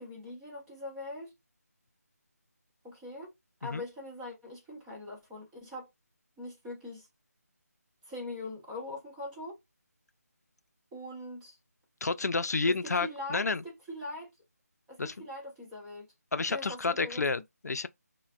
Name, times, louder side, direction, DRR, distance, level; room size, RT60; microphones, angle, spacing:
voice 1, 0.0-1.3 2.8-3.3 3.6-5.9 6.4-7.1 8.1-9.6 10.9-11.6 12.7-13.4 13.9-14.3 14.9-16.1 16.5-17.4, left 1 dB, 5° right, 0.3 m, -42 dB
voice 2, 12.0-13.6 15.0-15.1 16.3-17.9, left 4 dB, 75° left, 0.4 m, -30 dB
3.1 x 2.1 x 2.2 m
figure-of-eight pair, 160°, 9 cm